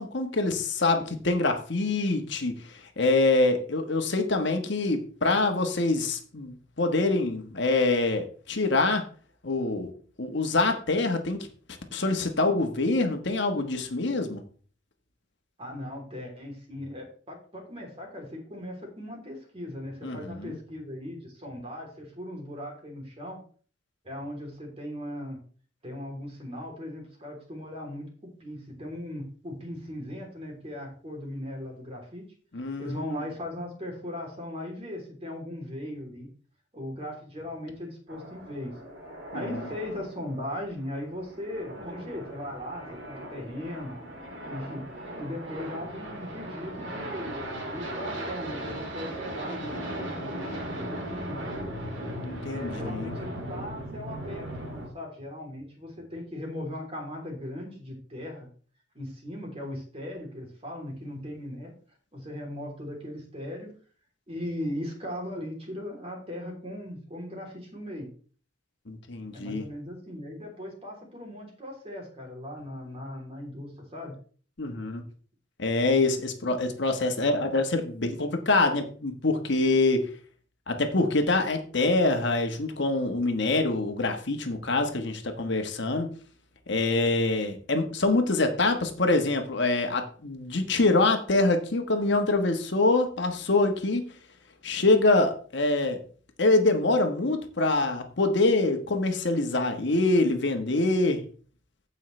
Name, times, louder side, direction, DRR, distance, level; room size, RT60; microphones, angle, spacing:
voice 1, 0.0-9.0 9.4-9.9 10.2-11.5 11.9-14.4 20.0-20.6 32.5-33.0 39.3-39.6 49.8-50.6 52.2-53.1 68.9-69.6 74.6-75.0 75.6-80.1 80.7-86.1 86.7-94.0 94.6-96.0 96.4-101.2, left 2 dB, 60° left, 5 dB, 1.3 m, -25 dB
voice 2, 15.6-23.4 24.0-25.4 25.8-28.0 28.4-32.2 32.8-36.3 36.7-38.7 39.3-44.0 44.4-44.8 45.2-51.4 52.5-58.5 58.9-61.7 62.1-63.7 64.3-68.1 69.3-74.1, left 1 dB, 30° right, 0 dB, 3.3 m, -38 dB
sound 1, 38.1-54.9, right 1 dB, 65° right, 2.6 m, -38 dB
15.5 x 5.6 x 3.3 m, 0.43 s
head